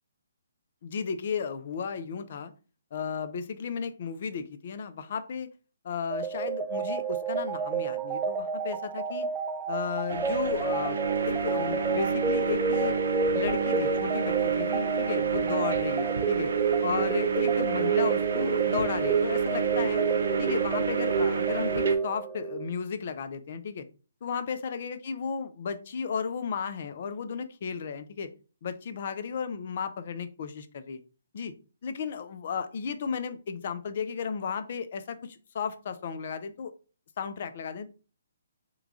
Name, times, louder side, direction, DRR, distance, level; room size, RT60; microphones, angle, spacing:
voice 1, 0.8-2.5 2.9-5.5 5.8-9.3 9.7-11.0 11.2-13.0 13.3-16.5 16.8-20.0 20.4-23.9 24.2-28.3 28.6-31.0 31.3-31.5 31.8-36.7 37.2-37.9, left 6 dB, 50° left, 10 dB, 0.4 m, -34 dB
sound 1, 6.1-22.7, right 6 dB, 15° right, 0.4 m, -29 dB
sound 2, 10.1-22.0, right 5 dB, 65° right, 0.6 m, -30 dB
3.1 x 2.3 x 3.5 m, 0.35 s
figure-of-eight pair, 140°, 0 cm